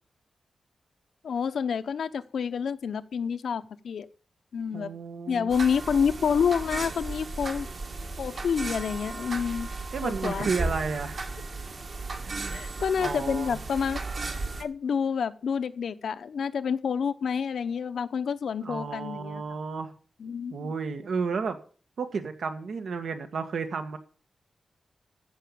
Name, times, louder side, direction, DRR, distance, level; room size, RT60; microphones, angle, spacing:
voice 1, 1.2-4.1 4.5-4.9 5.3-7.7 8.2-9.7 10.0-10.5 12.5-14.0 14.6-19.6 20.2-20.7, left 6 dB, 85° left, 0.8 m, -28 dB
voice 2, 4.7-5.5 9.9-11.2 12.2-12.6 13.0-13.6 18.6-19.9 20.5-21.6 22.0-24.0, right 5 dB, 80° right, 1.6 m, -32 dB
sound 1, 5.5-14.6, right 3 dB, 50° right, 1.7 m, -35 dB
14.5 x 5.6 x 8.7 m
wide cardioid pair, 135°, 0 cm